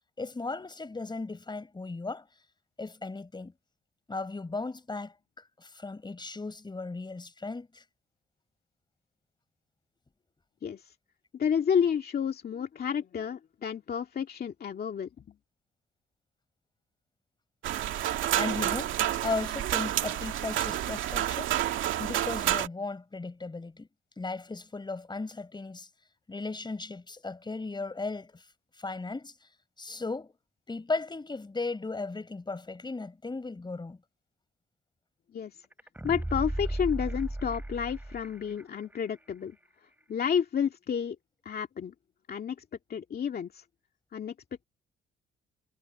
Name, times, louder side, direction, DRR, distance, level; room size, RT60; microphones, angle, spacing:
voice 1, 0.2-2.3 2.8-3.5 4.1-5.1 5.6-7.8 18.4-21.6 22.0-23.9 24.2-25.9 26.3-28.4 28.8-29.3 29.8-30.3 30.7-34.0, left 3 dB, 20° left, 5.6 m, -36 dB
voice 2, 10.6-10.9 11.3-15.3 35.3-35.6 36.0-39.6 40.1-41.2 41.4-41.9 42.3-42.6 42.9-43.6 44.1-44.3, left 7 dB, 50° left, 2.3 m, -30 dB
sound 1, 17.6-22.7, right 12 dB, 80° right, 2.2 m, -29 dB
sound 2, 35.7-38.6 38.9-39.0, right 1 dB, 10° right, 3.7 m, -35 dB
cardioid pair, 90°, 20 cm